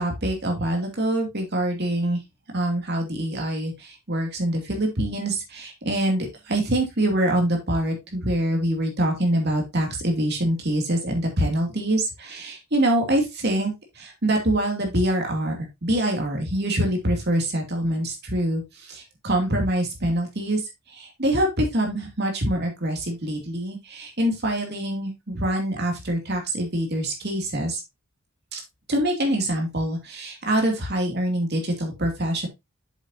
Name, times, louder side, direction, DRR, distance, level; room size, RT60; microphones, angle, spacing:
voice 1, 0.0-2.2 2.5-15.6 15.8-20.6 20.9-27.8 28.5-28.6 28.9-32.5, right 1 dB, 50° right, 2 dB, 2.7 m, -25 dB
7.9 x 7.5 x 2.8 m, 0.21 s
head